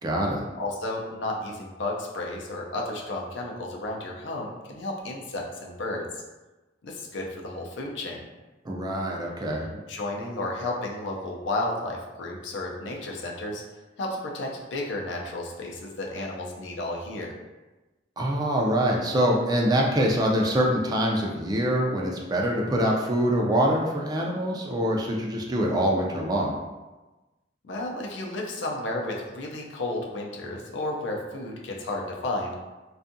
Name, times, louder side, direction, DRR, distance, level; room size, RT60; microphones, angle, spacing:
voice 1, 0.0-0.4 8.7-9.7 18.2-26.6, equal, 20° right, -1 dB, 0.3 m, -24 dB
voice 2, 0.6-6.2 6.8-8.2 9.7-13.6 14.0-17.3 27.6-32.5, left 2 dB, 85° left, -1 dB, 0.5 m, -32 dB
2.6 x 2.3 x 2.6 m, 1.1 s
head